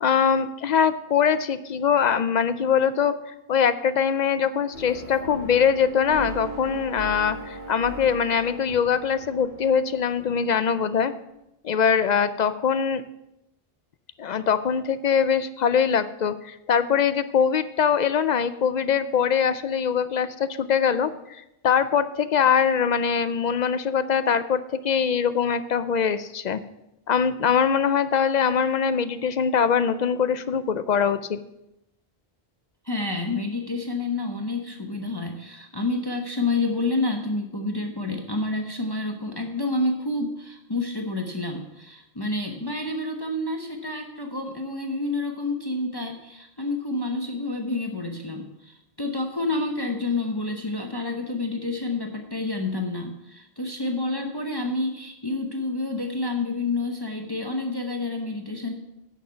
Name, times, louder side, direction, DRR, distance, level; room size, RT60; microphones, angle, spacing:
voice 1, 0.0-11.1 11.6-13.0 14.2-26.6 27.1-31.4, left 7 dB, 55° left, 13 dB, 0.5 m, -22 dB
sound 1, 4.7-10.8, right 1 dB, 75° left, 2.6 m, -38 dB
voice 2, 32.8-58.7, left 2 dB, 25° left, 3 dB, 0.8 m, -29 dB
9.6 x 6.5 x 5.6 m, 0.87 s
omnidirectional pair, 1.0 m